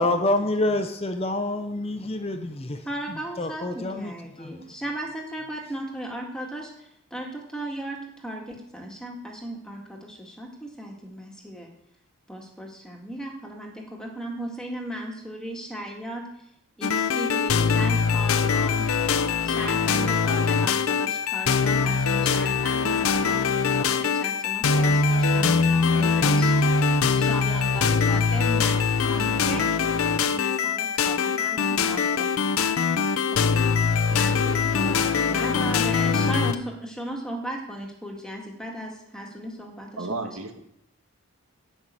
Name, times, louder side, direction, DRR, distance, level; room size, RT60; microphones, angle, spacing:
voice 1, 0.0-2.8 3.4-4.5, left 2 dB, 25° left, 7 dB, 0.8 m, -27 dB
voice 2, 0.6-0.9 2.9-11.7 12.3-16.2 16.8-18.9 19.4-23.4 23.8-26.5 27.1-29.7 30.3-32.3 33.3-33.4 34.1-40.3, right 1 dB, 5° left, 0 dB, 1.9 m, -36 dB
sound 1, 16.8-36.6, left 5 dB, 75° left, 0.7 m, -22 dB
voice 3, 40.0-40.6, right 3 dB, 80° right, 5 dB, 1.6 m, -32 dB
12.5 x 5.7 x 9.0 m, 0.76 s
head